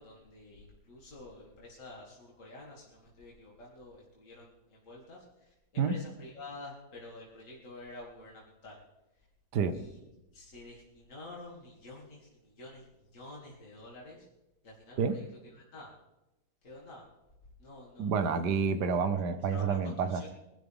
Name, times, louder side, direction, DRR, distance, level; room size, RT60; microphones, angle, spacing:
voice 1, 0.0-8.8 9.7-10.0 10.3-14.3 14.6-15.3 15.5-15.9 16.6-17.1 17.6-18.2 19.5-20.3, left 2 dB, 50° left, -4 dB, 3.1 m, -49 dB
voice 2, 18.0-20.2, right 5 dB, 80° right, 10 dB, 1.5 m, -29 dB
23.0 x 12.0 x 3.7 m, 0.97 s
omnidirectional pair, 1.8 m